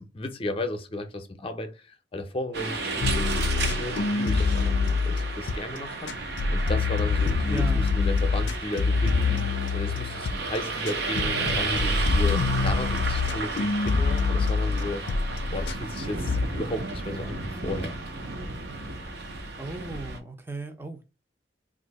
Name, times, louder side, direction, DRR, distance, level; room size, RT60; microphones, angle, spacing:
voice 1, 0.0-15.1 15.5-18.0, left 1 dB, 30° left, 0.6 m, -34 dB
sound 1, 2.5-20.2, right 3 dB, 65° right, 0.7 m, -33 dB
sound 2, 3.0-5.8 6.1-10.4 10.9-16.0 16.3-16.5, left 4 dB, 80° left, 0.4 m, -26 dB
voice 2, 7.5-7.9 19.6-21.0, right 3 dB, 15° right, 0.5 m, -35 dB
2.7 x 2.5 x 4.0 m
head